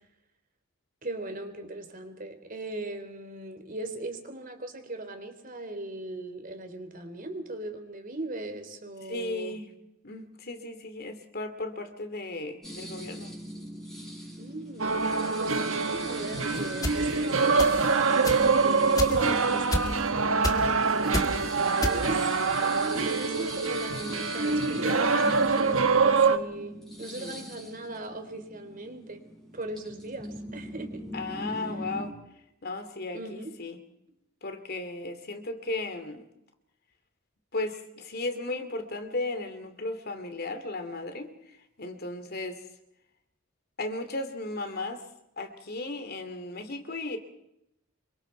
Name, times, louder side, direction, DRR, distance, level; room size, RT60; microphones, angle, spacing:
voice 1, 1.0-9.6 14.4-21.4 21.8-29.2 29.5-31.0 33.1-33.5, right 2 dB, 45° right, 6 dB, 3.6 m, -39 dB
voice 2, 9.0-9.7 10.0-13.3 19.1-19.4 27.0-27.5 31.1-32.2 32.6-33.8 34.4-36.2 37.5-41.3 41.8-42.6 43.8-45.1 45.4-47.2, left 2 dB, 50° left, 8 dB, 2.7 m, -35 dB
sound 1, 12.6-32.1, equal, ahead, 6.1 m, -41 dB
sound 2, 14.8-26.4, right 4 dB, 85° right, 1.5 m, -25 dB
sound 3, 16.8-16.9 17.6-17.9 18.2-18.4 19.0-19.3 19.7-20.1 20.4-20.7 21.1-21.3 21.8-22.2, left 1 dB, 20° left, 2.0 m, -29 dB
27.0 x 24.0 x 4.6 m, 0.82 s
head